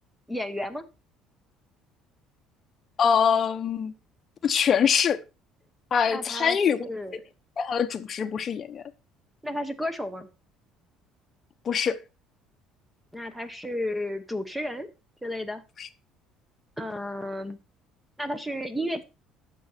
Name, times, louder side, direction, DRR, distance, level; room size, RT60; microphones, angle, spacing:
voice 1, 0.3-0.8 6.1-7.2 9.4-10.3 13.1-14.9 15.2-15.6 16.8-17.6 18.2-19.0, left 1 dB, 5° right, 1.1 m, -32 dB
voice 2, 3.0-3.9 4.4-5.2 5.9-6.8 7.6-8.8 11.6-12.0 15.8-15.9, left 7 dB, 35° left, 0.9 m, -23 dB
10.0 x 6.9 x 4.4 m
cardioid pair, 145°, 0 cm